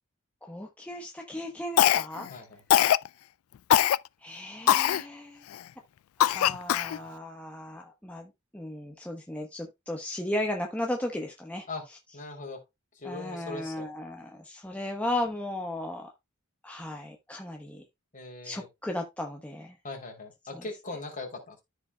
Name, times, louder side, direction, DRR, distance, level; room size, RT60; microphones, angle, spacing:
voice 1, 0.4-2.3 4.2-5.5 6.2-11.7 13.0-16.1 16.6-17.8 18.4-19.8, left 1 dB, 5° left, 1.0 m, -35 dB
Cough, 1.8-2.3 2.7-3.1 3.7-4.0 4.7-5.0 5.5-5.6 6.2-7.0, left 11 dB, 75° left, 0.3 m, -21 dB
voice 2, 2.3-2.6 11.7-11.9 12.1-12.6 12.9-13.9 18.1-18.7 19.8-21.6, left 2 dB, 40° left, 3.3 m, -40 dB
14.0 x 5.0 x 2.2 m
head